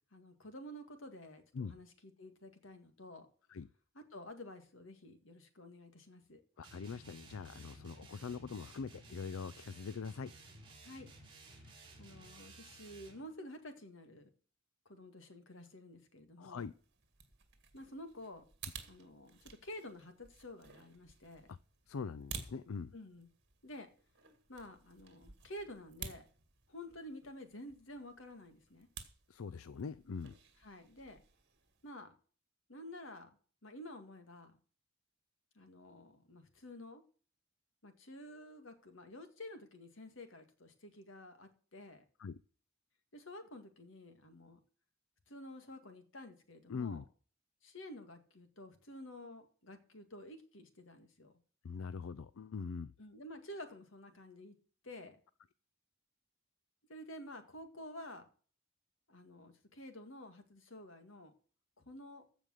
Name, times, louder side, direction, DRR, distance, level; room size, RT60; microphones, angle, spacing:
voice 1, 0.1-3.3 3.9-6.4 10.8-11.1 11.6-14.3 14.9-16.7 17.7-18.4 18.9-21.5 22.9-23.3 23.6-23.9 24.5-26.3 26.7-28.9 30.6-31.2 31.8-32.1 32.7-33.3 33.6-34.6 35.6-37.0 37.8-42.0 43.1-44.6 45.3-47.1 47.6-51.3 53.0-54.5 54.8-55.2 56.9-58.3 59.1-61.3 61.9-62.2, left 1 dB, 65° left, 2.0 m, -51 dB
voice 2, 6.6-10.3 16.4-16.7 21.5-21.6 21.9-22.9 29.3-30.3 42.2-42.4 46.7-47.0 51.6-52.9, left 5 dB, 85° left, 0.5 m, -42 dB
sound 1, 6.6-13.2, right 2 dB, 25° right, 4.7 m, -56 dB
sound 2, 16.6-31.9, right 6 dB, 55° right, 2.1 m, -54 dB
15.0 x 5.2 x 6.4 m
head